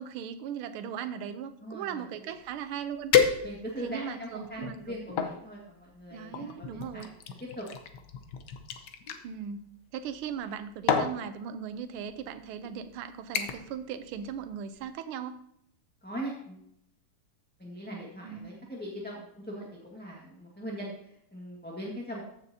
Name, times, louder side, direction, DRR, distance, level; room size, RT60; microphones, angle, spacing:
voice 1, 0.0-3.5 3.8-5.0 6.1-7.1 9.2-9.6 9.9-15.4 18.2-18.5, right 8 dB, 85° right, 10 dB, 1.5 m, -38 dB
voice 2, 1.6-2.3 3.4-7.1 7.6-7.7 16.0-16.6 17.6-22.2, equal, 5° left, -4 dB, 1.1 m, -40 dB
sound 1, 2.5-2.6 3.1-3.9 4.5-5.4 6.3-9.2 10.3-10.5 10.9-11.2 12.1-12.2 12.6-12.9 13.3-13.8 14.1-14.4 14.8-14.9, left 7 dB, 65° left, 1.2 m, -29 dB
14.5 x 6.8 x 2.7 m, 0.74 s
omnidirectional pair, 2.4 m